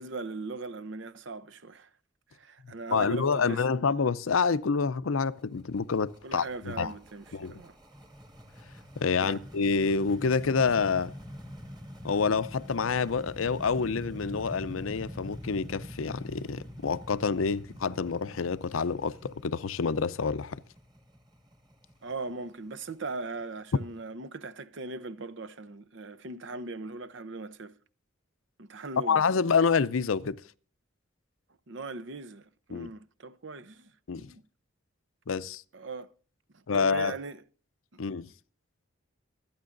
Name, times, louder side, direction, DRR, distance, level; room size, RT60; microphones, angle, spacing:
voice 1, 0.0-1.9 2.3-3.6 6.2-7.8 9.2-9.4 22.0-27.7 28.6-29.3 31.7-34.4 35.7-36.1 36.5-37.4 37.9-38.0, right 3 dB, 65° right, 0.7 m, -39 dB
voice 2, 2.9-6.9 7.3-7.6 9.0-11.1 12.0-20.6 29.1-30.4 32.7-32.9 34.1-34.3 35.3-35.6 36.7-37.1 38.0-38.3, left 5 dB, 85° left, 0.6 m, -27 dB
sound 1, 5.2-24.0, equal, 20° right, 1.9 m, -45 dB
25.0 x 9.5 x 2.6 m
head